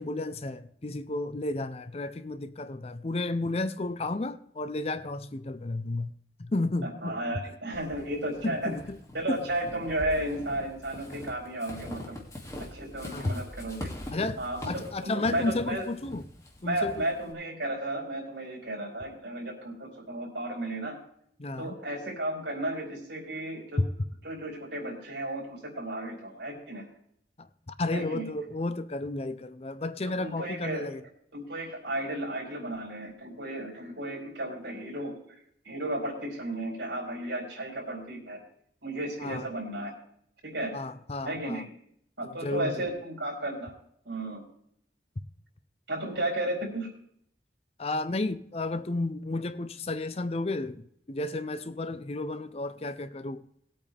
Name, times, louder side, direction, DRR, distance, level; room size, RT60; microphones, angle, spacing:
voice 1, 0.0-6.1 6.4-7.2 8.4-9.0 9.3-9.4 13.1-13.4 14.1-16.2 16.6-17.0 21.4-21.8 23.8-23.9 27.4-27.5 27.8-31.0 39.2-39.5 40.7-41.6 42.2-42.9 47.8-53.4, left 2 dB, 35° left, 0.6 m, -32 dB
voice 2, 6.8-8.8 9.1-12.2 12.7-13.9 14.4-15.8 16.6-21.0 21.6-23.8 24.2-26.8 27.9-28.3 30.1-30.9 31.3-35.2 35.6-38.4 38.8-39.9 40.4-40.7 41.2-41.7 42.2-43.7 44.0-44.4 45.9-46.9, right 1 dB, 80° right, 4.4 m, -34 dB
Walk footsteps / Squeak, 7.7-17.3, left 1 dB, 20° left, 2.4 m, -43 dB
19.5 x 8.6 x 3.4 m
head